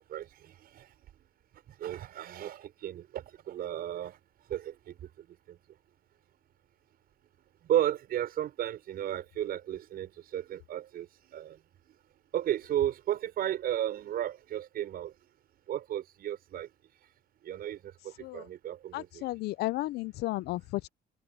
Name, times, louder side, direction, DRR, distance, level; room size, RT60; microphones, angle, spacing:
voice 1, 0.1-0.9 1.8-4.2 4.5-5.6 7.6-11.6 12.3-15.1 15.7-16.7 17.4-19.2, right 11 dB, 65° right, 5.9 m, -34 dB
voice 2, 18.9-20.9, left 18 dB, 75° left, 0.6 m, -33 dB
cardioid pair, 110°, 17 cm